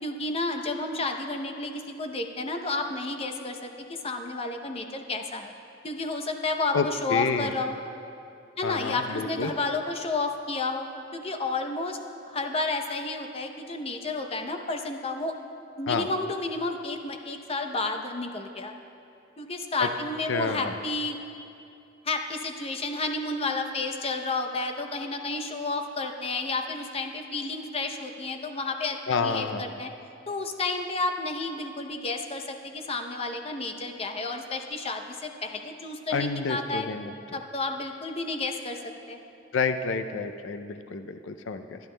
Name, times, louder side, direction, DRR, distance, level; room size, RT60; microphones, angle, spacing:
voice 1, 0.0-5.5 5.8-7.8 8.6-10.9 11.1-12.0 12.3-15.3 15.8-18.7 19.4-21.2 22.0-29.9 30.3-36.9 37.3-38.8 39.1-39.2, left 3 dB, 30° left, 5 dB, 0.7 m, -31 dB
voice 2, 6.7-7.5 8.6-9.5 15.9-16.1 19.8-19.9 20.3-20.8 29.1-29.7 36.1-37.1 39.5-41.8, left 5 dB, 85° left, 8 dB, 0.5 m, -29 dB
23.5 x 10.5 x 2.2 m, 2.7 s
head